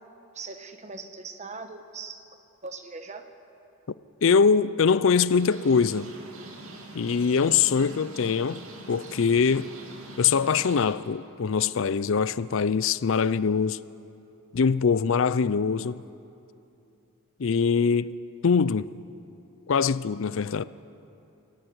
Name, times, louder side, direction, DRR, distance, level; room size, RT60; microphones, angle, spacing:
voice 1, 0.3-2.2 2.6-3.2, right 4 dB, 30° right, 1.3 m, -40 dB
voice 2, 4.2-6.1 6.9-9.7 10.2-13.8 14.5-16.0 17.4-18.1 18.4-18.9 19.7-20.6, left 6 dB, 60° left, 0.5 m, -23 dB
sound 1, 5.3-10.9, right 2 dB, 70° right, 2.8 m, -44 dB
23.5 x 14.5 x 9.8 m
head